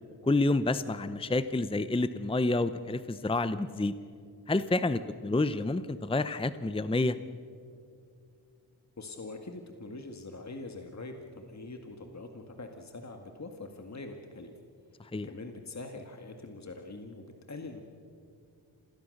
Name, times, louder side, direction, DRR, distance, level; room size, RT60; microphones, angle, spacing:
voice 1, 0.2-3.9 4.5-7.2 15.0-15.3, left 2 dB, 10° left, 13 dB, 0.7 m, -29 dB
voice 2, 9.0-14.5 15.2-17.8, left 2 dB, 35° left, 5 dB, 2.0 m, -43 dB
27.0 x 19.0 x 6.6 m, 2.4 s
cardioid pair, 55°, 45 cm